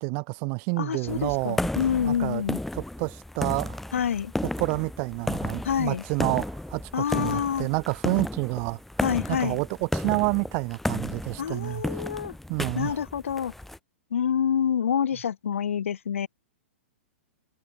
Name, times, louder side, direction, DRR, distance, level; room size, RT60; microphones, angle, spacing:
voice 1, 0.0-1.6 2.0-2.4 2.7-3.8 4.4-8.8 9.3-12.0 12.5-13.0, right 40 dB or more, 45° right, 4.5 m, -29 dB
voice 2, 0.8-2.6 3.9-4.3 5.6-6.0 6.9-7.7 9.0-9.6 11.4-12.3 12.7-13.5 14.1-16.3, left 8 dB, 80° left, 5.1 m, -27 dB
sound 1, 1.1-13.8, left 1 dB, 5° left, 2.0 m, -33 dB
hypercardioid pair, 125°, 7 cm